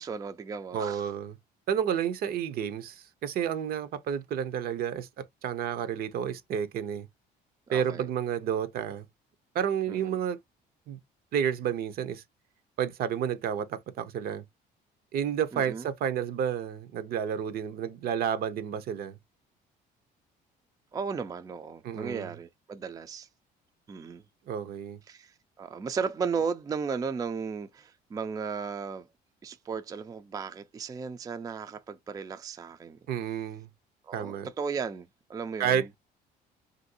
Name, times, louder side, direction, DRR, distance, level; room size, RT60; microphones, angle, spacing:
voice 1, 0.0-1.1 7.7-8.1 9.9-10.2 15.5-15.8 20.9-23.3 23.9-24.2 25.1-29.1 29.4-33.0 34.0-35.9, right 5 dB, 20° right, 0.3 m, -35 dB
voice 2, 0.7-1.3 1.7-7.1 7.7-9.0 9.5-10.4 10.9-11.0 11.3-12.2 12.8-14.4 15.1-19.2 21.8-22.3 24.5-25.0 33.1-33.7 34.1-34.5 35.6-36.0, right 8 dB, 65° right, 0.6 m, -30 dB
3.0 x 2.6 x 2.6 m
cardioid pair, 110°, 17 cm